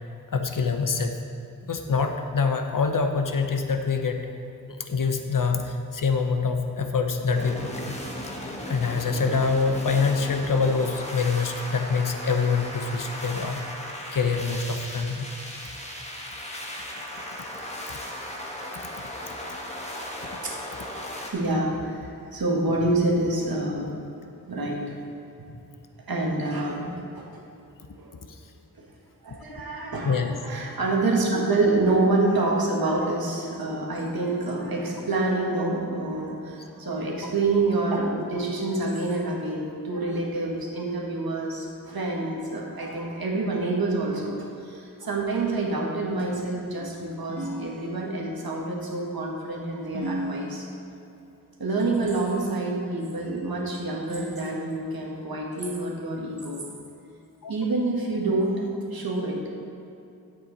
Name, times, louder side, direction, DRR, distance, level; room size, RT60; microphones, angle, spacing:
voice 1, 0.3-1.2 1.6-4.3 4.7-8.0 8.2-15.3 20.9-21.1 30.0-30.4 57.4-57.5, left 4 dB, 65° left, 6 dB, 0.8 m, -25 dB
sound 1, 7.3-21.3, left 1 dB, 20° left, 1.3 m, -36 dB
voice 2, 21.2-23.9 24.5-24.8 25.4-25.5 26.1-27.2 28.0-28.1 28.8-28.9 29.2-50.7 51.6-56.6 57.5-59.4, right 2 dB, 90° right, -2 dB, 1.5 m, -27 dB
sound 2, 47.3-48.5 49.9-51.1 52.0-52.9 54.1-55.1, right 1 dB, 55° right, 1.8 m, -36 dB
9.9 x 7.9 x 4.0 m, 2.8 s
wide cardioid pair, 75°, 35 cm